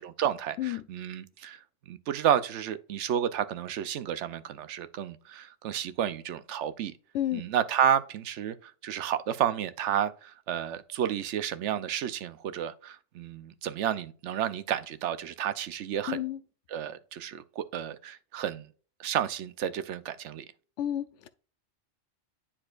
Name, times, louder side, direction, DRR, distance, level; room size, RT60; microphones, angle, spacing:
voice 1, 0.0-6.9 7.3-16.2 16.7-18.7 19.0-20.4, right 9 dB, 75° right, 0.9 m, -31 dB
voice 2, 16.1-16.4 20.8-21.3, left 12 dB, 75° left, 0.9 m, -31 dB
9.9 x 4.4 x 2.4 m
omnidirectional pair, 1.2 m